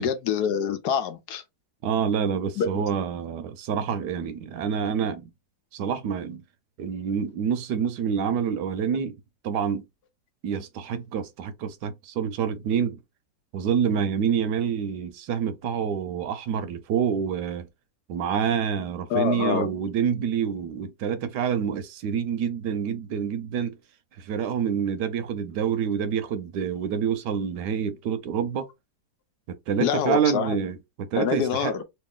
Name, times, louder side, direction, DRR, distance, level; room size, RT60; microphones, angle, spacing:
voice 1, 0.0-1.4 2.6-2.8 19.1-19.7 29.8-30.6 31.2-31.8, left 8 dB, 75° left, 1.1 m, -26 dB
voice 2, 1.8-5.3 5.7-6.4 6.8-9.2 9.4-9.8 10.4-13.0 13.5-17.7 18.1-23.8 24.2-28.7 29.7-31.8, right 7 dB, 80° right, 1.2 m, -27 dB
3.2 x 2.7 x 3.5 m
omnidirectional pair, 1.8 m